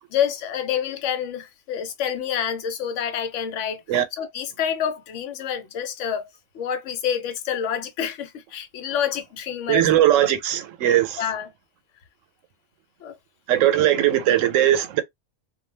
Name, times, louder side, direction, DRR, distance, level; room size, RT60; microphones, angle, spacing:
voice 1, 0.1-3.8 4.1-6.3 6.5-9.9 11.2-11.5 13.0-13.2, left 8 dB, 75° left, 0.9 m, -28 dB
voice 2, 9.7-11.2 13.5-15.0, right 12 dB, 90° right, 1.0 m, -19 dB
2.2 x 2.2 x 3.1 m
omnidirectional pair, 1.3 m